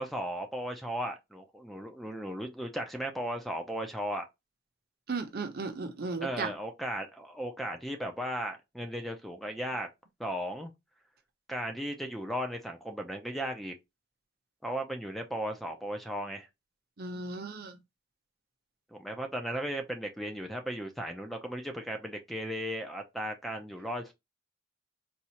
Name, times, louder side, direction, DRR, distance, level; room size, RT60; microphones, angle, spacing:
voice 1, 0.0-4.3 6.2-9.9 10.2-10.7 11.5-13.7 14.6-16.5 18.9-24.1, equal, ahead, 0.4 m, -36 dB
voice 2, 5.1-6.5 17.0-17.8, right 4 dB, 55° right, 0.7 m, -35 dB
4.2 x 2.3 x 2.8 m
head